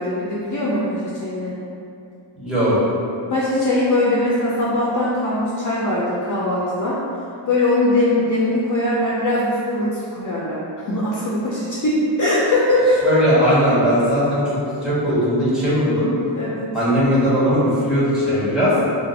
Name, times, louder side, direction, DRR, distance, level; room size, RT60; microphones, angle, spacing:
voice 1, 0.0-1.6 3.3-7.0 7.5-13.0 16.3-16.7, left 1 dB, 40° left, -7 dB, 0.6 m, -21 dB
voice 2, 2.4-2.8 13.0-14.4 14.8-16.1 16.7-18.7, equal, ahead, -10 dB, 1.4 m, -18 dB
2.5 x 2.4 x 4.0 m, 2.5 s
cardioid pair, 60°, 47 cm